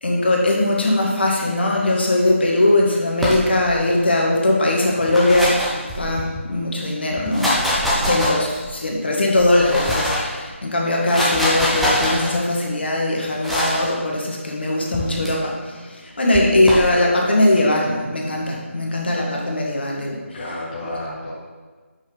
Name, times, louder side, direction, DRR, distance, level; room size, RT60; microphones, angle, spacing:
voice 1, 0.0-7.5 7.9-20.4, left 1 dB, 50° left, -2 dB, 1.4 m, -20 dB
sound 1, 3.2-3.8 4.9-6.4 7.1-8.8 9.4-10.3 10.9-12.3 13.4-13.9 14.9-15.3 16.3-16.9, left 1 dB, ahead, 0.3 m, -23 dB
voice 2, 20.3-21.3, left 1 dB, 20° left, -8 dB, 1.0 m, -31 dB
6.7 x 5.4 x 3.8 m, 1.4 s
figure-of-eight pair, 160°, 7 cm